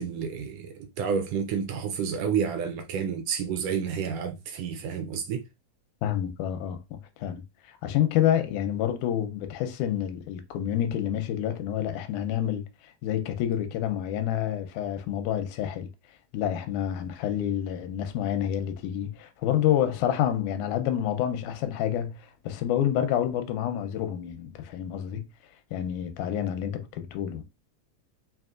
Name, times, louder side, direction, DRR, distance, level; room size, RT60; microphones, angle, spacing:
voice 1, 0.0-5.4, right 7 dB, 80° right, 1.5 m, -30 dB
voice 2, 6.0-7.4 7.7-12.7 13.0-15.9 16.3-25.3 25.7-27.4, left 10 dB, 90° left, 2.1 m, -28 dB
5.2 x 2.9 x 2.4 m
omnidirectional pair, 3.4 m